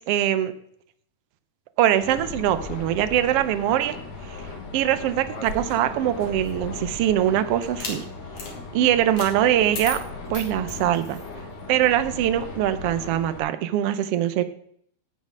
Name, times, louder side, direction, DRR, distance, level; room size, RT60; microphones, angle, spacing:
voice 1, 0.1-0.5 1.8-4.0 4.3-4.4 4.7-8.0 8.7-10.0 10.3-11.2 11.7-14.4, right 11 dB, 75° right, 12 dB, 1.4 m, -22 dB
sound 1, 2.0-13.4, left 3 dB, 75° left, 3.6 m, -37 dB
sound 2, 5.2-6.8 7.6-8.0 8.3-8.5 9.2-9.3 9.7-11.3, left 3 dB, 50° left, 3.4 m, -36 dB
16.0 x 6.5 x 6.2 m, 0.67 s
omnidirectional pair, 3.6 m